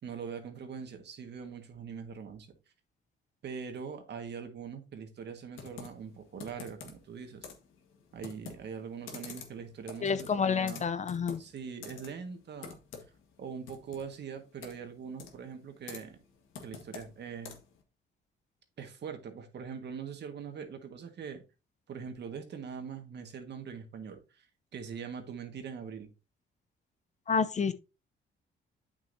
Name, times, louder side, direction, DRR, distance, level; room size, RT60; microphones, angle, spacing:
voice 1, 0.0-2.5 3.4-7.5 8.1-10.8 11.4-12.8 13.4-16.2 16.6-17.6 18.8-21.4 21.9-24.5 24.7-26.1, right 6 dB, 60° right, 1.7 m, -42 dB
Computer keyboard, 5.5-17.8, left 6 dB, 85° left, 1.6 m, -49 dB
voice 2, 10.0-11.4 27.3-27.7, left 6 dB, 35° left, 0.6 m, -29 dB
8.3 x 6.5 x 2.7 m
cardioid pair, 90°, 20 cm